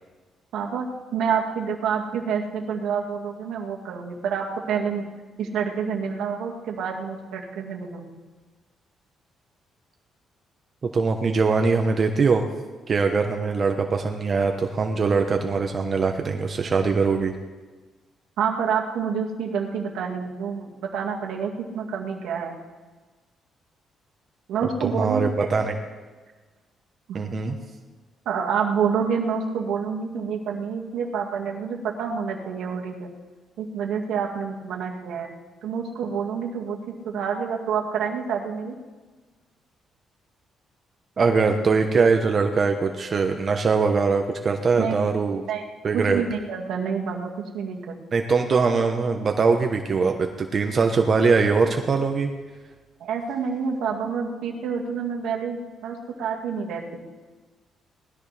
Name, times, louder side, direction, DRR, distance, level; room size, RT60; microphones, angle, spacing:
voice 1, 0.5-0.9 1.1-5.1 5.4-8.2 18.4-22.6 24.5-25.3 27.1-27.2 28.3-33.1 33.6-35.3 35.6-36.8 37.0-38.7 44.8-45.0 45.5-45.6 45.9-48.0 53.0-57.0, right 6 dB, 80° right, 0 dB, 2.0 m, -28 dB
voice 2, 10.9-12.4 12.9-17.3 24.6-25.7 27.1-27.6 41.2-45.4 45.8-46.2 48.1-52.3, right 4 dB, 45° right, 4 dB, 1.1 m, -22 dB
19.5 x 14.0 x 3.4 m, 1.3 s
cardioid pair, 90°, 0 cm